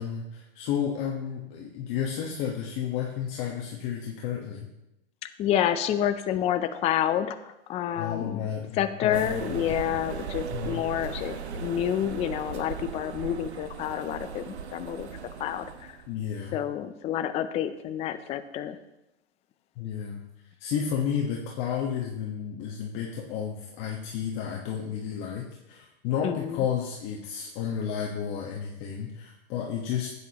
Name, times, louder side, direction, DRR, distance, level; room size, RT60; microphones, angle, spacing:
voice 1, 0.0-4.7 8.0-9.7 10.5-10.8 16.1-16.6 19.8-20.2 20.6-30.1, left 8 dB, 40° left, -2 dB, 1.2 m, -32 dB
voice 2, 5.4-8.4 8.8-15.1 15.4-15.9 16.5-18.8 26.2-26.6, left 10 dB, 20° left, 10 dB, 0.4 m, -29 dB
sound 1, 9.1-16.1, right 6 dB, 90° right, 1.0 m, -38 dB
12.5 x 8.4 x 2.9 m, 0.91 s
hypercardioid pair, 130°, 33 cm